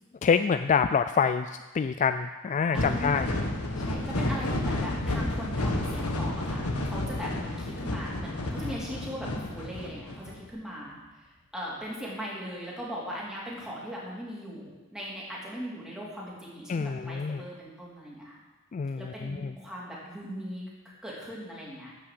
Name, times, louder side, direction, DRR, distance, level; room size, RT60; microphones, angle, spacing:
voice 1, 0.2-3.3 16.7-17.4 18.7-19.5, left 6 dB, 35° left, 10 dB, 0.3 m, -26 dB
sound 1, 2.7-10.4, left 1 dB, 90° left, 1.6 m, -31 dB
voice 2, 2.7-3.4 3.8-11.0 11.5-18.4 19.0-20.7 21.0-21.9, equal, 5° right, -5 dB, 3.1 m, -39 dB
sound 2, 5.0-11.0, left 1 dB, 55° left, 2.1 m, -42 dB
12.5 x 6.2 x 7.8 m, 1.2 s
head